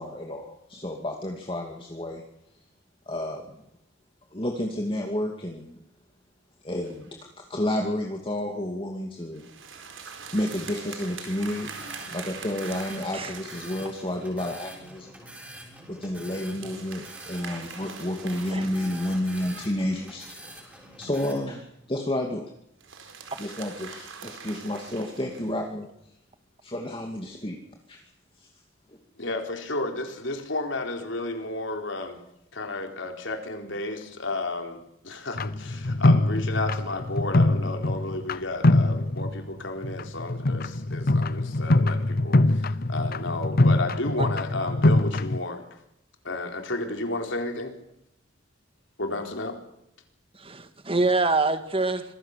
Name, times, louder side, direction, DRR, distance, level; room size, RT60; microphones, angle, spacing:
voice 1, 0.0-2.2 3.1-3.6 4.3-5.8 6.6-7.1 7.4-9.5 10.3-11.7 12.1-15.2 15.9-21.6 21.9-22.5 23.4-25.9 26.6-27.6 27.9-28.0 28.4-28.5 28.9-29.0, left 1 dB, 25° left, 1 dB, 2.5 m, -31 dB
sound 1, 6.8-7.1 9.3-14.3 16.5-20.3 22.8-25.6, right 5 dB, 80° right, 4.4 m, -43 dB
sound 2, 11.4-21.3, right 1 dB, 10° right, 6.8 m, -46 dB
voice 2, 29.2-32.2 32.5-45.6 46.2-47.7 49.0-49.6, left 2 dB, 70° left, 4 dB, 4.2 m, -32 dB
sound 3, 35.4-38.4 38.6-39.5 39.8-45.4, left 2 dB, 50° left, 0.8 m, -23 dB
voice 3, 50.4-52.0, right 3 dB, 30° right, 9 dB, 2.0 m, -25 dB
26.0 x 20.0 x 6.8 m, 0.80 s
head